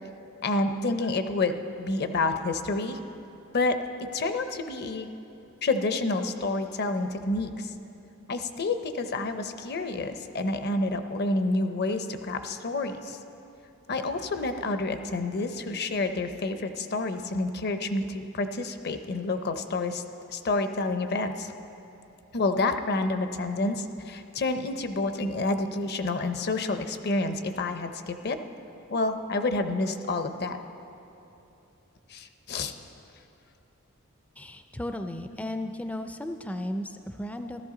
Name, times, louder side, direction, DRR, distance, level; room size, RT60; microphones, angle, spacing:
voice 1, 0.4-3.0 3.5-5.1 5.6-7.7 8.3-13.2 13.9-20.0 20.3-21.5 22.3-28.4 28.9-30.6 32.1-32.7, left 2 dB, 50° left, 8 dB, 0.6 m, -29 dB
voice 2, 34.4-37.6, left 1 dB, 5° left, 7 dB, 0.3 m, -35 dB
14.5 x 13.0 x 3.8 m, 2.9 s
head